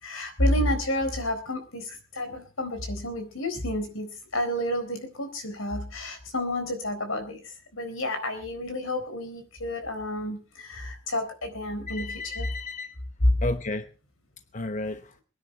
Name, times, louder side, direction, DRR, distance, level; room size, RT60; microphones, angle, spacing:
voice 1, 0.0-7.4 7.7-12.5 13.2-13.4, left 1 dB, 85° left, 8 dB, 4.1 m, -29 dB
voice 2, 11.9-12.9 13.4-13.9 14.5-15.1, left 2 dB, 40° left, 9 dB, 1.0 m, -32 dB
22.5 x 9.9 x 4.4 m, 0.34 s
head